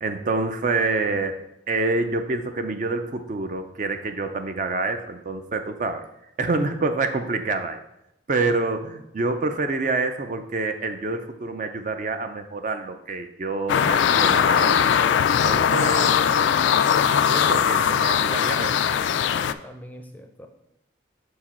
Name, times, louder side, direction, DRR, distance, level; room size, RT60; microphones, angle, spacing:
voice 1, 0.0-1.4 1.7-6.1 6.4-7.8 8.3-14.9 15.4-16.2 17.3-18.9, right 3 dB, 45° right, 7 dB, 0.4 m, -27 dB
sound 1, 13.7-19.5, left 8 dB, 80° left, 0.3 m, -20 dB
voice 2, 19.2-20.5, equal, 10° left, 4 dB, 0.5 m, -44 dB
5.9 x 4.7 x 4.3 m, 0.83 s
head